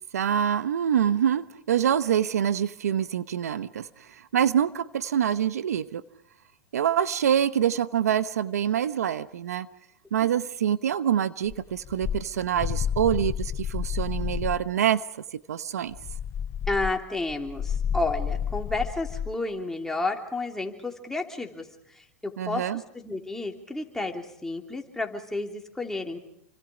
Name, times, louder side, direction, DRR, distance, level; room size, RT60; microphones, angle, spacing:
voice 1, 0.1-6.0 6.7-9.7 10.1-15.9 22.4-22.8, right 9 dB, 90° right, 15 dB, 0.9 m, -26 dB
sound 1, 11.5-14.7 15.9-19.4, left 8 dB, 35° left, 0.8 m, -31 dB
voice 2, 16.7-26.2, left 2 dB, 5° left, 2 dB, 3.0 m, -31 dB
29.0 x 25.0 x 5.1 m, 0.75 s
hypercardioid pair, 115°, 8 cm